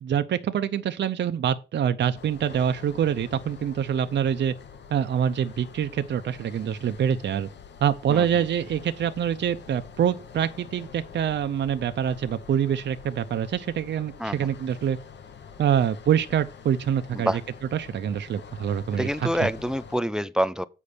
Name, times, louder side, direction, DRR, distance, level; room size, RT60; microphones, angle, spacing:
voice 1, 0.0-4.5 4.9-7.5 7.8-15.0 15.6-17.4 17.7-19.5, right 9 dB, 75° right, 0.5 m, -25 dB
sound 1, 2.1-20.0, left 6 dB, 75° left, 1.0 m, -46 dB
voice 2, 19.0-20.6, equal, 5° right, 0.4 m, -26 dB
8.4 x 5.3 x 5.0 m
wide cardioid pair, 115°, 18 cm